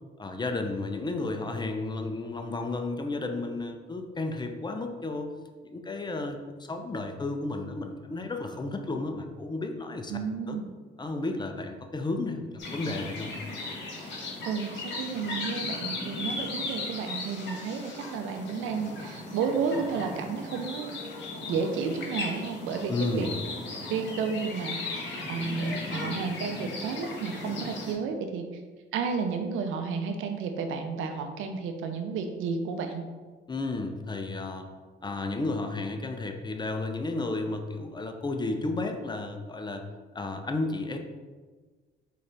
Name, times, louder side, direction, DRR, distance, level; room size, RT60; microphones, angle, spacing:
voice 1, 0.2-5.3 5.6-6.4 6.7-10.1 10.5-10.6 11.0-13.3 22.9-23.3 33.5-34.7 35.0-39.8 40.1-41.0, left 2 dB, 20° left, 5 dB, 0.5 m, -32 dB
voice 2, 10.1-10.7 14.0-14.1 14.4-20.9 21.5-23.3 23.9-28.5 28.9-33.0, right 5 dB, 85° right, 6 dB, 0.6 m, -32 dB
sound 1, 12.6-27.9, left 2 dB, 65° left, 1.5 m, -37 dB
4.2 x 3.7 x 3.4 m, 1.4 s
cardioid pair, 90°, 20 cm